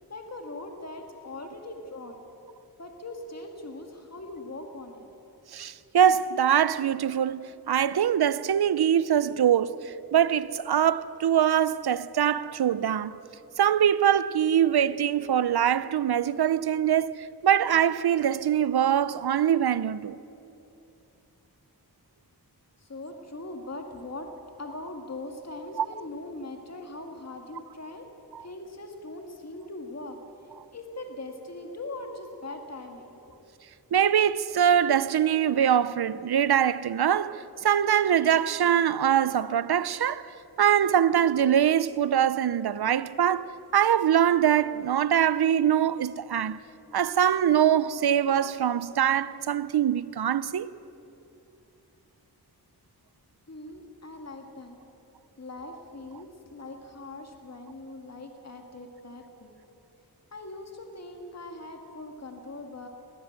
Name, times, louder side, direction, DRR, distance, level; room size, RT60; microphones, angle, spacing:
voice 1, 0.1-2.2 2.8-5.0 22.8-24.3 24.6-28.0 28.4-30.2 30.7-33.2 53.5-54.8 55.4-59.6 60.3-62.9, left 2 dB, 40° left, 2.0 m, -41 dB
voice 2, 5.5-9.8 10.1-13.2 13.6-20.2 25.8-25.9 33.9-40.2 40.6-46.6 46.9-50.7, right 9 dB, 75° right, 0.7 m, -23 dB
20.0 x 15.0 x 8.9 m
wide cardioid pair, 75°, 38 cm